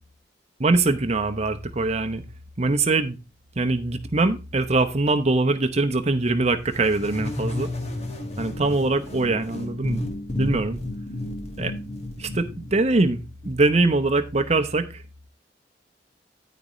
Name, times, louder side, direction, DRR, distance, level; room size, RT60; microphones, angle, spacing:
voice 1, 0.6-2.2 2.6-3.2 3.6-7.7 8.4-10.1 10.4-10.8 11.6-11.7 12.2-15.0, right 2 dB, 40° right, 0.8 m, -23 dB
sound 1, 6.7-13.5, left 1 dB, 40° left, 1.9 m, -32 dB
9.5 x 9.4 x 3.1 m
head